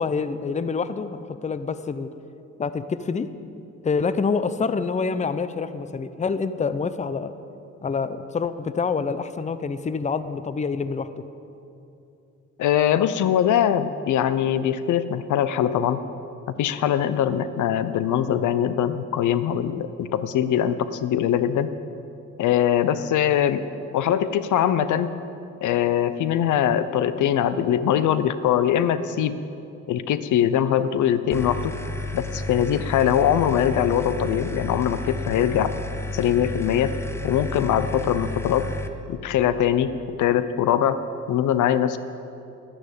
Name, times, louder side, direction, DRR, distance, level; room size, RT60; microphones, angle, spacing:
voice 1, 0.0-2.1 2.6-3.3 3.8-7.3 7.8-11.1, left 5 dB, 25° left, 13 dB, 0.6 m, -26 dB
voice 2, 12.6-16.0 16.6-21.7 22.4-23.6 23.9-25.1 25.6-29.4 29.9-31.7 32.1-35.7 36.1-36.9 37.2-38.7 39.1-39.9 40.2-41.0 41.3-42.0, left 10 dB, 75° left, 13 dB, 0.7 m, -22 dB
sound 1, 31.3-38.9, left 2 dB, 10° left, 1.0 m, -32 dB
11.5 x 11.5 x 8.5 m, 2.8 s
cardioid pair, 90°, 30 cm